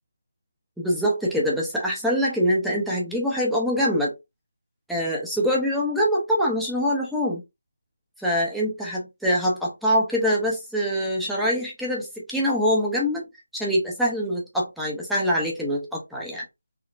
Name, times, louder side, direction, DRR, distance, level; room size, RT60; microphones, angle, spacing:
voice 1, 0.8-4.1 4.9-7.4 8.2-13.3 13.5-16.4, equal, ahead, -5 dB, 0.4 m, -24 dB
3.7 x 2.3 x 2.3 m, 0.22 s
figure-of-eight pair, 175°, 0 cm